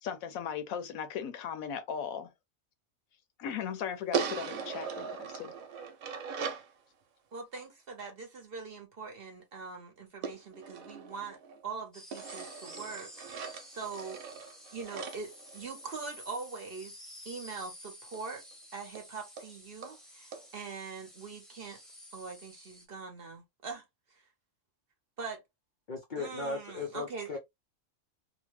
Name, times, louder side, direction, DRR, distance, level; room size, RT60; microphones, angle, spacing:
voice 1, 0.0-2.3 3.4-5.5, left 8 dB, 80° left, 1.0 m, -37 dB
sound 1, 4.1-6.7 10.2-11.6 12.1-16.2 18.1-18.2 18.5-18.6 19.0-19.1 19.4-19.5 19.8-20.0 20.3-20.4, right 6 dB, 80° right, 1.1 m, -39 dB
voice 2, 7.3-14.2 14.7-17.0 17.2-18.4 18.7-21.8 22.1-23.8 24.1-24.2 25.2-25.4 26.2-27.3, right 4 dB, 50° right, 0.8 m, -42 dB
sound 2, 11.9-22.8, left 1 dB, ahead, 0.7 m, -51 dB
voice 3, 25.9-27.4, left 3 dB, 60° left, 0.5 m, -37 dB
2.8 x 2.2 x 3.0 m
omnidirectional pair, 1.5 m